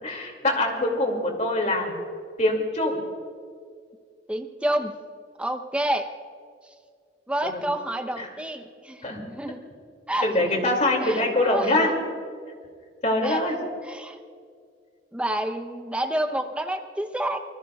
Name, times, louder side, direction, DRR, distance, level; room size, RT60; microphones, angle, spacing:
voice 1, 0.0-1.9 2.4-3.0 7.4-7.6 8.2-8.3 9.0-9.2 10.2-11.9 13.0-13.6, left 1 dB, 40° left, 2 dB, 2.4 m, -24 dB
voice 2, 4.3-4.9 5.4-6.1 7.3-9.6 10.1-10.6 11.0-11.9 13.2-14.2 15.1-17.4, right 1 dB, 5° right, 6 dB, 0.7 m, -29 dB
25.5 x 20.0 x 2.4 m, 2.1 s
head